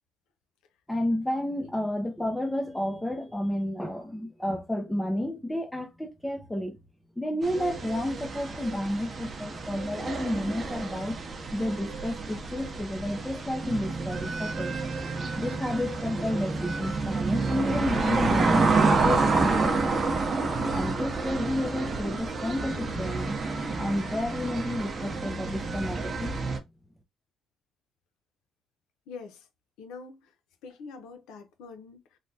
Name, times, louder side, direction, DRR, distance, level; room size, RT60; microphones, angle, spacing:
voice 1, 0.9-6.8 7.2-11.2 11.5-14.7 15.4-20.2 20.7-23.3 23.8-26.6, left 1 dB, 5° left, 0.5 m, -31 dB
sound 1, 7.4-26.6, right 3 dB, 40° right, 0.6 m, -29 dB
voice 2, 29.1-29.5 29.8-30.3 30.6-32.2, left 4 dB, 85° left, 0.6 m, -44 dB
3.3 x 2.1 x 2.6 m
cardioid pair, 100°, 0 cm